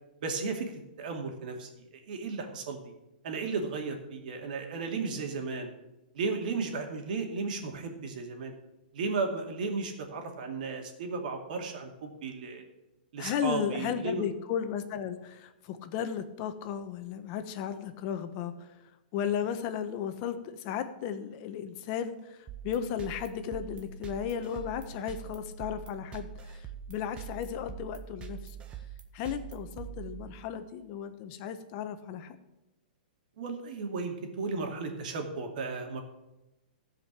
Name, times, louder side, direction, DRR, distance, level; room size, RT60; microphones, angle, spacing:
voice 1, 0.2-0.7 1.0-2.9 3.2-5.7 6.1-8.5 8.9-12.6 13.1-14.3 33.4-36.0, right 4 dB, 60° right, 4 dB, 2.4 m, -34 dB
voice 2, 13.2-18.7 19.1-28.6 29.1-32.4, left 8 dB, 40° left, 9 dB, 1.1 m, -35 dB
sound 1, 22.5-30.7, right 7 dB, 20° right, 1.1 m, -44 dB
14.0 x 5.2 x 7.4 m, 0.98 s
hypercardioid pair, 140°, 5 cm